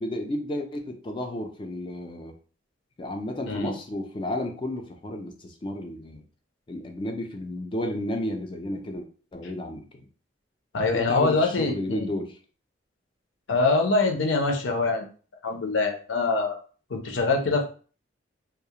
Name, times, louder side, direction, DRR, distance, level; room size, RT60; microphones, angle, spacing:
voice 1, 0.0-2.3 3.0-6.2 6.7-10.1 10.9-12.3, left 1 dB, 25° left, 4 dB, 0.3 m, -32 dB
voice 2, 10.7-12.1 13.5-15.1 15.4-16.6 16.9-17.6, left 3 dB, 85° left, 4 dB, 0.5 m, -24 dB
2.3 x 2.0 x 2.8 m, 0.39 s
head